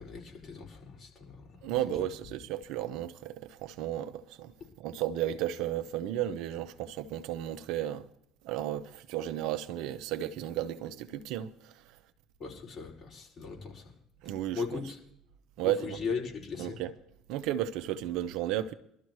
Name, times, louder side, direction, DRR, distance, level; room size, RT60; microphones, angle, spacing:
voice 1, 0.0-2.0 12.4-13.9 14.5-15.0 15.6-16.8, left 5 dB, 55° left, 5.4 m, -38 dB
voice 2, 1.6-4.5 4.8-8.0 8.4-11.7 14.2-14.6 15.6-16.0 16.6-16.9 17.3-18.7, right 12 dB, 75° right, 0.8 m, -33 dB
22.0 x 13.0 x 3.2 m
supercardioid pair, 70°, 0 cm